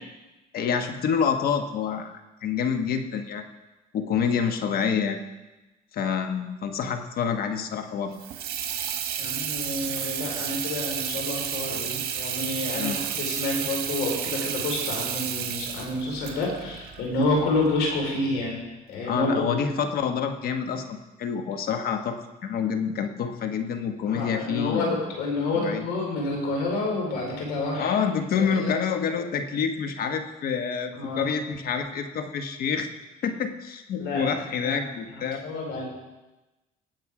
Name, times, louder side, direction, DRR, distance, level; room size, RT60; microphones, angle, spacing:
voice 1, 0.5-3.5 3.9-5.2 5.9-8.1 12.8-13.0 19.1-25.0 25.5-25.9 27.8-32.9 33.2-35.4, left 6 dB, 60° left, 6 dB, 1.3 m, -27 dB
Water tap faucet / Sink (filling or washing), 8.1-17.7, right 9 dB, 65° right, 1.7 m, -32 dB
voice 2, 9.2-18.6 18.9-19.7 24.1-27.9 28.3-28.7 30.9-31.3 34.0-35.8, left 2 dB, 85° left, -1 dB, 4.6 m, -29 dB
18.5 x 7.8 x 4.9 m, 1.1 s
cardioid pair, 110°, 17 cm